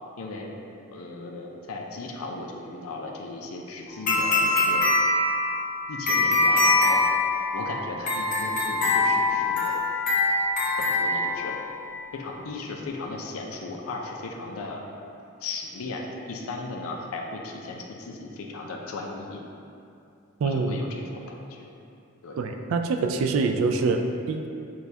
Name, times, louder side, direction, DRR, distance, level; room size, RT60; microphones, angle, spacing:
voice 1, 0.2-0.5 0.9-4.9 5.9-7.1 7.5-9.7 10.8-11.5 12.1-14.8 15.4-19.4 20.4-21.7 22.2-22.4, left 3 dB, 80° left, 0 dB, 0.5 m, -36 dB
sound 1, 4.1-11.8, left 2 dB, 40° left, 0.8 m, -23 dB
voice 2, 20.4-20.8 22.4-24.5, right 4 dB, 75° right, 5 dB, 0.3 m, -25 dB
6.1 x 2.3 x 2.7 m, 2.6 s
head